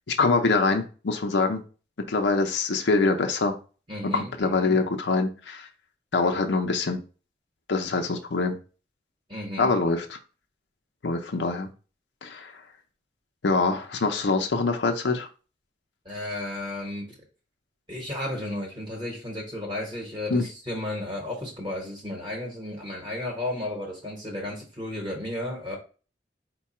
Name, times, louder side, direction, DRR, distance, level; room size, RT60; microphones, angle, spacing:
voice 1, 0.1-1.6 2.0-3.6 4.1-5.7 6.1-7.0 7.7-8.6 9.6-10.2 11.0-11.7 12.2-12.5 13.4-15.3 20.3-20.4, left 3 dB, 90° left, 4 dB, 0.6 m, -24 dB
voice 2, 3.9-4.8 9.3-9.7 16.0-17.1 17.9-25.8, left 1 dB, 25° right, -1 dB, 1.0 m, -33 dB
4.6 x 2.2 x 4.2 m, 0.35 s
head